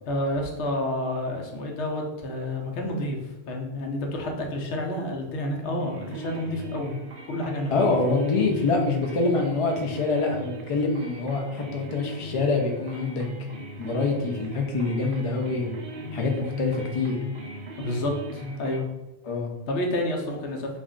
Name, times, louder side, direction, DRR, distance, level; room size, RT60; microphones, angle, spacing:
voice 1, 0.0-3.2 3.5-6.9 7.3-7.9 17.8-18.9 19.7-20.8, left 1 dB, 85° left, 1 dB, 0.9 m, -29 dB
sound 1, 5.6-18.8, equal, 60° right, 0.6 m, -38 dB
voice 2, 7.7-13.2 13.8-15.8 16.1-17.2 19.2-19.5, left 3 dB, 55° left, 1 dB, 0.3 m, -25 dB
2.4 x 2.2 x 3.6 m, 1.0 s
omnidirectional pair, 1.1 m